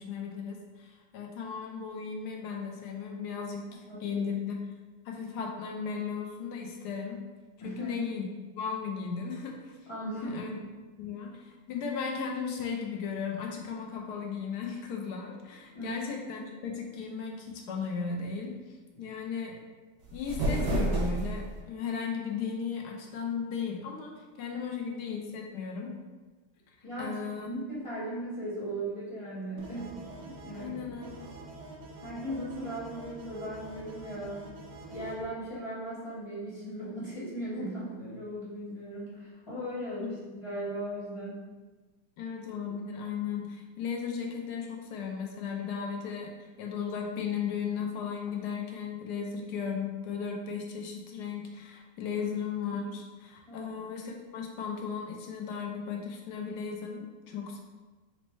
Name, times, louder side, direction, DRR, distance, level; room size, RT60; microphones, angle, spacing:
voice 1, 0.0-4.6 5.0-7.2 7.6-8.3 8.6-9.8 10.1-10.5 11.0-18.5 19.0-19.5 20.1-25.9 26.8-27.5 30.6-31.3 40.0-40.1 42.2-57.6, left 6 dB, 75° left, 1 dB, 1.1 m, -36 dB
voice 2, 3.9-4.3 7.6-7.9 9.9-10.6 15.7-16.0 26.8-27.2 27.4-30.8 32.0-34.4 34.9-41.4 52.1-52.2 53.5-53.7, right 1 dB, 20° left, -8 dB, 1.1 m, -38 dB
sound 1, 20.0-21.6, right 1 dB, 90° right, 1.8 m, -30 dB
sound 2, 29.6-35.2, right 2 dB, 70° right, 1.1 m, -46 dB
4.1 x 2.1 x 4.5 m, 1.3 s
omnidirectional pair, 1.8 m